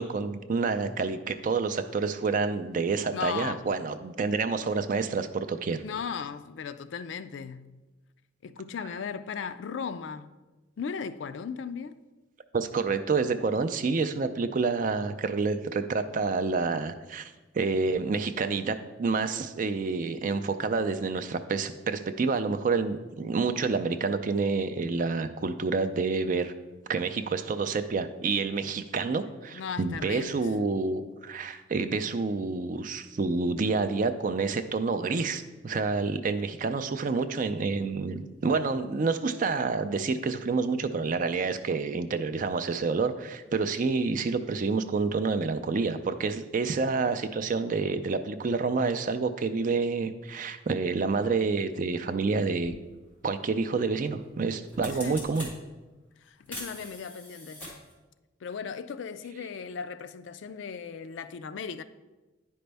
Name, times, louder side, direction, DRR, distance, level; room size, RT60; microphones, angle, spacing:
voice 1, 0.0-5.8 12.5-26.5 26.9-52.7 53.2-55.5, right 4 dB, 40° right, 0.4 m, -28 dB
voice 2, 3.1-3.7 5.8-7.8 8.4-10.4 10.8-12.0 29.5-30.5 55.0-55.2 56.2-57.7 58.4-61.8, left 6 dB, 65° left, 0.3 m, -37 dB
sound 1, 52.6-52.7 54.1-54.3 54.6-55.5 56.5-57.9, left 1 dB, 10° left, 1.8 m, -41 dB
9.6 x 5.2 x 3.4 m
head